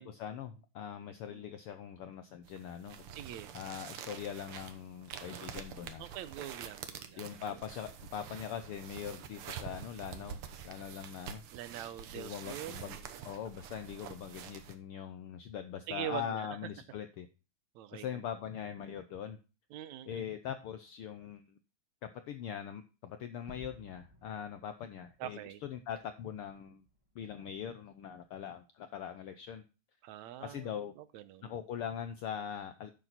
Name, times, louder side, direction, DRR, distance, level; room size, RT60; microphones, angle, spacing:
voice 1, 0.0-3.0 3.5-6.1 7.2-10.4 10.6-11.4 12.1-13.0 13.2-17.3 17.9-19.4 20.1-21.6 22.0-26.8 27.1-29.6 30.4-30.9 31.4-32.9, left 8 dB, 75° left, 9 dB, 1.2 m, -42 dB
sound 1, 2.4-14.7, right 8 dB, 60° right, 1.7 m, -47 dB
voice 2, 3.1-3.5 6.0-7.2 11.5-13.2 15.9-16.5 17.8-18.2 19.7-20.2 25.2-25.6 30.0-31.5, right 12 dB, 80° right, 13 dB, 2.0 m, -44 dB
Gunshot gunfire / Fireworks / Boom, 23.5-28.3, equal, 15° right, 1.6 m, -59 dB
10.5 x 6.7 x 4.0 m, 0.32 s
omnidirectional pair, 3.3 m